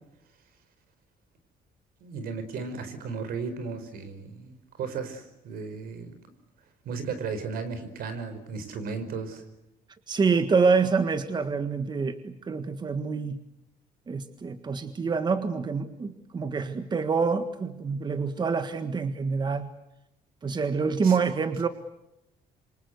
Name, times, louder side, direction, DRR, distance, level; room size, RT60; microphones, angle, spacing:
voice 1, 2.0-6.1 6.8-9.4 21.0-21.2, right 5 dB, 75° right, 11 dB, 4.9 m, -35 dB
voice 2, 10.1-13.4 14.1-19.7 20.4-21.7, right 5 dB, 30° right, 9 dB, 1.7 m, -26 dB
27.5 x 25.0 x 8.1 m, 0.86 s
cardioid pair, 130°, 15 cm